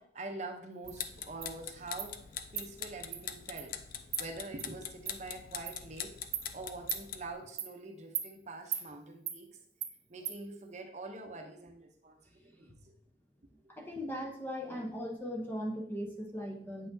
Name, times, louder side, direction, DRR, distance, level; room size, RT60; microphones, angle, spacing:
voice 1, 0.0-2.2 2.5-3.8 4.2-6.2 6.5-9.6 10.1-12.7 13.9-14.0, right 2 dB, 40° right, 3 dB, 0.8 m, -45 dB
sound 1, 0.8-7.3, left 8 dB, 50° left, 0.5 m, -43 dB
Insect, 0.9-1.0 1.4-1.5 2.0-2.1 2.6-2.7 3.1-3.2 3.6-3.7 4.1-4.2 4.6-4.7 5.1-5.2 5.7-5.8 6.3-6.5 6.9-7.0 7.6-7.7 8.1-8.3 8.7-8.8 9.3-9.4 9.8-9.9 10.2-10.4, right 11 dB, 90° right, 0.7 m, -37 dB
voice 2, 13.7-16.9, equal, 10° left, 1 dB, 0.9 m, -38 dB
8.4 x 5.7 x 2.7 m, 0.65 s
head